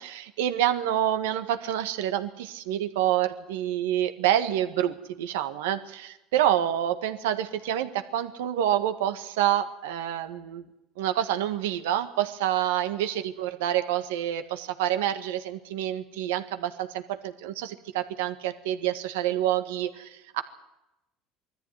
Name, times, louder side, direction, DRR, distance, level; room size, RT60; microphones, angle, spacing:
voice 1, 0.0-10.6 11.0-20.4, right 11 dB, 90° right, 9 dB, 1.6 m, -27 dB
21.0 x 14.0 x 9.7 m, 0.91 s
supercardioid pair, 95°, 0 cm